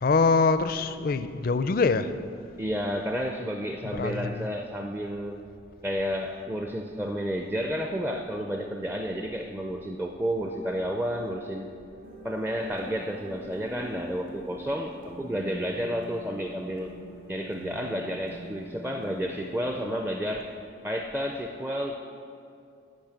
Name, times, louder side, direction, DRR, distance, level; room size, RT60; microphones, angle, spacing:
voice 1, 0.0-2.1 4.0-4.5, left 4 dB, 45° left, 12 dB, 0.4 m, -24 dB
voice 2, 2.6-5.4 5.8-11.7 12.2-16.9 17.3-20.5 20.8-22.0, equal, 10° right, 3 dB, 0.4 m, -31 dB
sound 1, 12.0-19.8, equal, 80° right, 2.1 m, -44 dB
10.5 x 5.8 x 8.8 m, 2.5 s
head